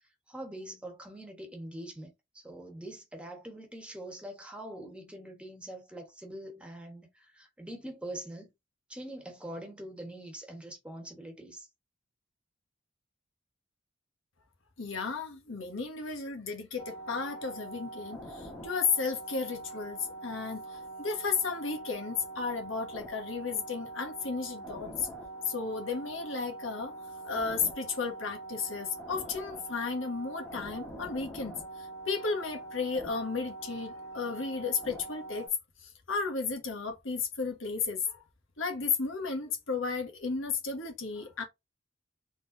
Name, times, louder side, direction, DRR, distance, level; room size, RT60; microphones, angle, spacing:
voice 1, 0.3-8.5 8.9-11.7, right 1 dB, 5° right, 1.3 m, -43 dB
voice 2, 14.8-25.1 25.4-26.9 27.2-35.5 35.8-38.2 38.6-41.4, left 5 dB, 80° left, 1.4 m, -34 dB
sound 1, 16.8-35.5, right 2 dB, 15° left, 1.4 m, -44 dB
4.0 x 3.8 x 2.7 m
head